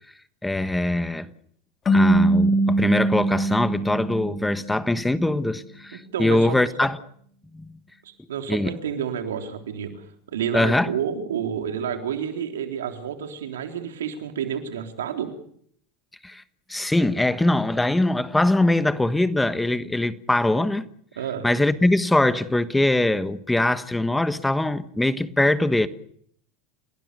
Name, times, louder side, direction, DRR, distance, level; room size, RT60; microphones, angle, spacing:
voice 1, 0.4-1.3 1.9-7.0 7.5-7.8 8.5-8.7 10.5-10.9 16.2-16.4 16.7-20.9 21.4-25.9, left 1 dB, 5° left, 1.4 m, -22 dB
sound 1, 1.9-5.0, right 2 dB, 25° left, 3.5 m, -22 dB
voice 2, 5.9-6.6 8.0-15.3 21.2-21.5, right 8 dB, 85° right, 3.7 m, -30 dB
30.0 x 18.5 x 6.8 m
hypercardioid pair, 95°, 0 cm